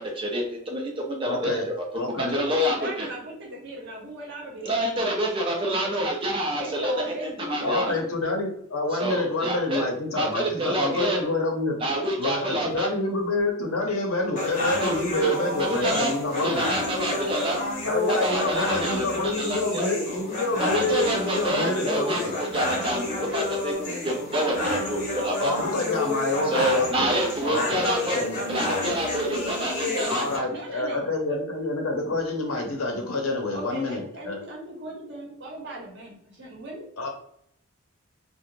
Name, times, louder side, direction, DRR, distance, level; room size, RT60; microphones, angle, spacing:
voice 1, 0.0-1.8 2.2-3.1 4.6-7.9 9.0-9.9 10.1-11.2 11.8-12.9 14.8-15.0 15.2-16.1 16.4-17.6 18.1-19.1 19.4-19.9 20.6-25.5 26.5-28.2 28.5-30.2, right 1 dB, 25° right, 1 dB, 0.4 m, -27 dB
voice 2, 1.2-1.7 1.9-2.4 7.6-11.8 12.2-16.7 17.8-22.4 25.4-27.2 27.4-28.5 30.1-34.4 37.0-37.1, left 2 dB, 80° left, 2 dB, 0.7 m, -27 dB
voice 3, 2.5-5.1 6.6-8.0 29.8-31.1 33.5-36.9, right 1 dB, 55° right, -3 dB, 0.9 m, -38 dB
sound 1, 14.4-30.4, left 2 dB, 40° left, 0.8 m, -30 dB
2.4 x 2.1 x 3.0 m, 0.68 s
head